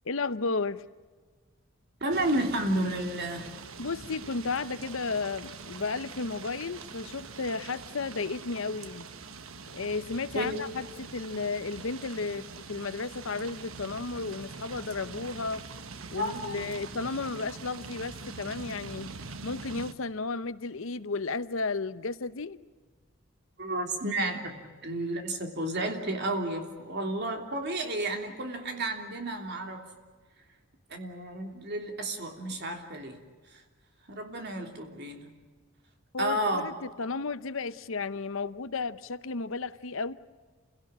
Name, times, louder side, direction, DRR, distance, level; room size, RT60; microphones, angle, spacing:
voice 1, 0.0-0.9 3.8-9.1 9.7-15.6 16.1-19.1 19.4-22.6 36.1-40.1, left 4 dB, 65° left, 14 dB, 0.8 m, -33 dB
voice 2, 2.0-3.5 10.3-10.5 16.2-16.7 23.6-29.9 30.9-33.2 33.5-33.6 34.1-35.3 36.2-36.7, right 1 dB, 50° right, 4 dB, 3.1 m, -32 dB
sound 1, 2.1-19.9, right 4 dB, 70° right, 1.2 m, -44 dB
28.5 x 17.0 x 8.8 m, 1.4 s
head